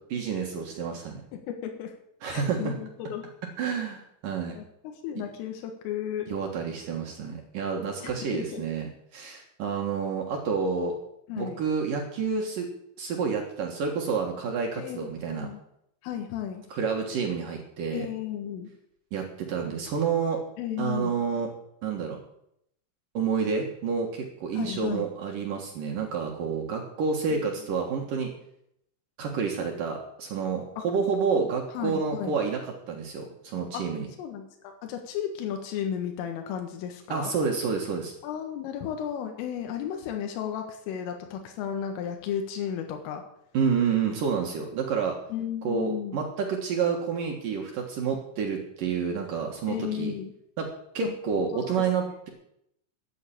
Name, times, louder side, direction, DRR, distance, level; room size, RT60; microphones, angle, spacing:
voice 1, 0.1-1.2 2.2-2.7 3.6-4.6 6.3-11.0 11.4-12.7 13.0-15.5 16.7-18.1 19.1-20.4 20.8-21.5 21.8-22.2 23.1-28.3 29.2-34.1 37.1-38.1 43.5-45.2 45.6-50.1 50.6-50.7 50.9-52.3, right 5 dB, 60° right, 1 dB, 2.5 m, -29 dB
voice 2, 1.3-1.9 2.2-3.3 4.6-6.3 8.0-8.6 11.3-11.6 14.8-15.6 16.0-16.6 17.9-18.7 20.6-21.2 24.5-25.1 30.8-30.9 31.7-32.4 33.7-33.8 34.2-37.3 38.2-43.2 45.3-46.2 49.7-50.3 51.0-51.1 51.5-51.9, left 9 dB, 85° left, 4 dB, 4.1 m, -34 dB
13.5 x 9.1 x 8.7 m, 0.77 s
omnidirectional pair, 5.8 m